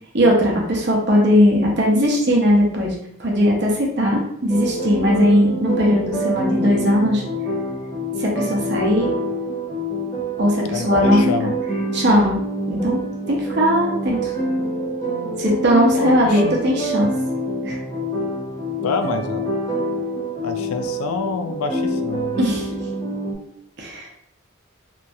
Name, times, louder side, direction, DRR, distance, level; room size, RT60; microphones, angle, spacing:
voice 1, 0.1-2.9 3.2-7.2 8.2-9.1 10.4-11.2 11.9-12.4 12.7-13.0 13.3-14.3 15.4-17.1 17.6-17.8 22.4-22.7 23.8-24.1, equal, 50° right, -1 dB, 0.7 m, -18 dB
sound 1, 4.5-23.3, equal, 15° left, 0.8 m, -26 dB
voice 2, 10.7-11.5 15.9-16.6 18.8-19.4 20.4-22.4, left 4 dB, 90° left, 7 dB, 0.4 m, -27 dB
3.0 x 2.7 x 2.3 m, 0.72 s
head